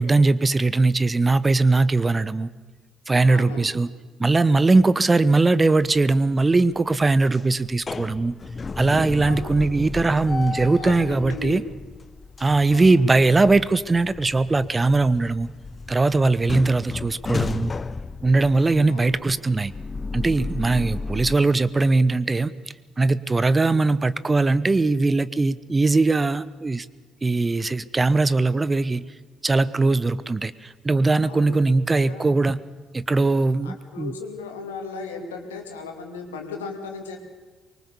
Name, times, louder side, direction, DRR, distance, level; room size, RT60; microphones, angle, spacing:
voice 1, 0.0-2.5 3.1-3.9 4.2-8.3 8.8-11.6 12.4-15.5 15.9-17.7 18.2-19.7 20.1-22.5 23.0-26.9 27.2-29.0 29.4-32.6 32.9-34.1, right 3 dB, 25° right, 17 dB, 0.9 m, -20 dB
voice 2, 3.2-3.8 9.2-9.6 10.8-11.6 12.7-13.1 18.9-19.3 31.2-31.6 31.9-32.2 33.6-37.2, left 5 dB, 80° left, 3 dB, 2.6 m, -36 dB
sound 1, 5.8-6.3 6.7-21.4, left 4 dB, 30° left, 0.8 m, -34 dB
24.0 x 22.5 x 7.0 m, 1.3 s
figure-of-eight pair, 45°, 0 cm